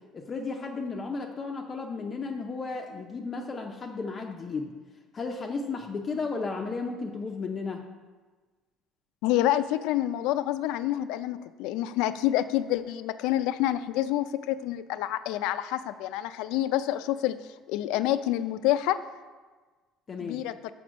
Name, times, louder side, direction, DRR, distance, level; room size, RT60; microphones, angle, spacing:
voice 1, 0.1-4.7 5.1-7.8 20.1-20.4, left 4 dB, 25° left, 2 dB, 0.5 m, -34 dB
voice 2, 9.2-17.3 17.7-19.0 20.2-20.5, left 13 dB, 85° left, 12 dB, 0.4 m, -27 dB
6.1 x 5.0 x 6.2 m, 1.3 s
cardioid pair, 145°, 0 cm